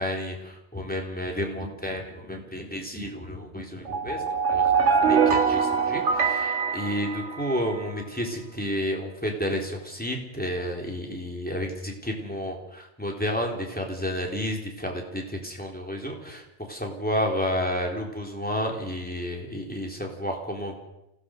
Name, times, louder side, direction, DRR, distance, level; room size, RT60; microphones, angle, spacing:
voice 1, 0.0-20.8, equal, 10° left, 0 dB, 3.7 m, -31 dB
sound 1, 3.9-7.8, right 6 dB, 85° right, 1.7 m, -23 dB
25.5 x 17.0 x 6.5 m, 0.87 s
omnidirectional pair, 1.2 m